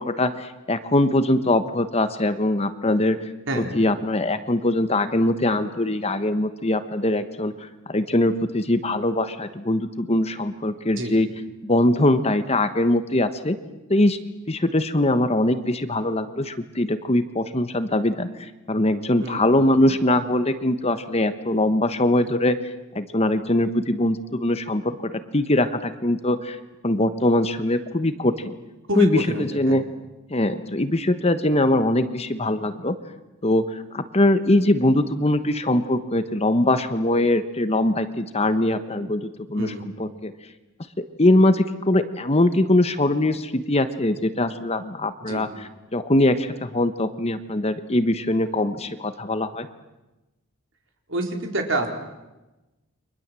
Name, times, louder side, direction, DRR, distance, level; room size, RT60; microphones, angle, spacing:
voice 1, 0.0-3.2 3.6-7.5 7.9-11.3 11.6-13.6 13.9-14.2 14.5-22.6 22.9-26.6 26.8-28.5 29.0-29.8 30.3-32.9 33.4-40.3 41.2-45.5 45.9-49.7, left 1 dB, 30° left, 10 dB, 1.2 m, -22 dB
voice 2, 28.9-29.8 39.6-39.8 45.3-45.4 51.1-51.9, right 1 dB, 60° right, 3 dB, 4.4 m, -27 dB
30.0 x 24.5 x 7.7 m, 1.0 s
head